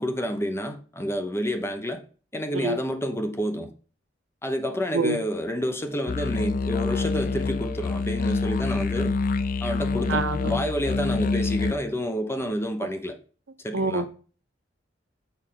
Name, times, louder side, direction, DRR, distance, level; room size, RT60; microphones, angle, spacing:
voice 1, 0.0-2.0 2.3-3.7 4.4-9.1 9.6-13.2 13.6-14.1, equal, 15° left, 0.7 m, -29 dB
sound 1, 6.1-11.7, left 4 dB, 45° left, 0.4 m, -26 dB
voice 2, 10.1-10.6 13.7-14.1, right 3 dB, 80° right, 0.7 m, -26 dB
6.8 x 4.8 x 3.7 m
head